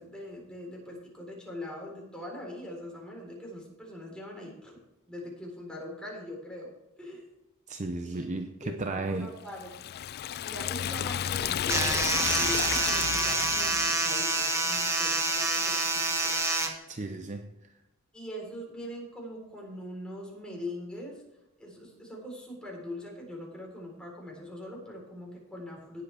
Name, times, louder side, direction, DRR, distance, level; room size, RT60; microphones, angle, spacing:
voice 1, 0.0-4.8 5.1-6.7 7.0-7.2 8.0-8.3 8.6-9.7 10.4-16.3 18.1-21.2 21.6-26.0, left 1 dB, 5° left, 3.9 m, -42 dB
voice 2, 7.7-9.3 16.9-17.5, right 2 dB, 35° right, 0.6 m, -34 dB
Liquid, 9.5-14.2, left 10 dB, 45° left, 0.3 m, -32 dB
sound 1, 11.7-16.7, right 2 dB, 15° right, 1.4 m, -27 dB
18.0 x 7.7 x 3.4 m
head